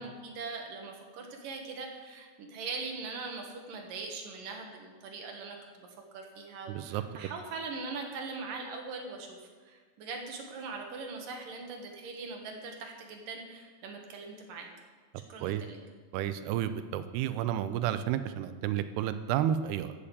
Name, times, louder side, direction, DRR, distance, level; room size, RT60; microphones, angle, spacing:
voice 1, 0.0-5.9 6.1-9.4 9.7-14.7 15.3-15.8, right 4 dB, 65° right, 2 dB, 2.9 m, -41 dB
voice 2, 6.7-7.0 15.4-15.6 16.1-19.9, right 11 dB, 85° right, 11 dB, 2.6 m, -31 dB
13.5 x 7.2 x 8.4 m, 1.5 s
omnidirectional pair, 4.6 m